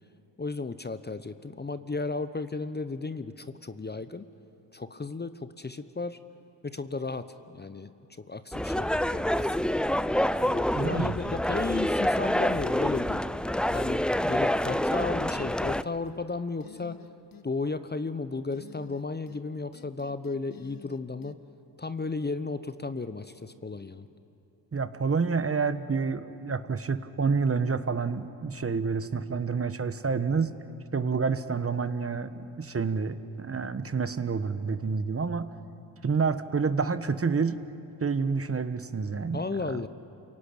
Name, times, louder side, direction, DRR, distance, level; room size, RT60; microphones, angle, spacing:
voice 1, 0.4-4.2 4.7-6.2 6.6-7.9 8.2-9.7 10.4-13.3 13.7-17.0 17.4-21.4 21.8-24.1 39.3-39.9, left 3 dB, 20° left, 12 dB, 1.0 m, -34 dB
sound 1, 8.5-15.8, left 1 dB, ahead, 0.5 m, -27 dB
voice 2, 10.7-11.2 24.7-30.5 30.9-35.5 36.0-37.6 38.0-39.8, right 5 dB, 30° right, 12 dB, 1.2 m, -28 dB
sound 2, 15.3-15.5 15.8-16.2 16.6-17.5 18.5-19.4 19.7-21.4, left 6 dB, 45° left, 1.3 m, -50 dB
28.5 x 17.5 x 8.8 m, 2.9 s
hypercardioid pair, 45°, 48 cm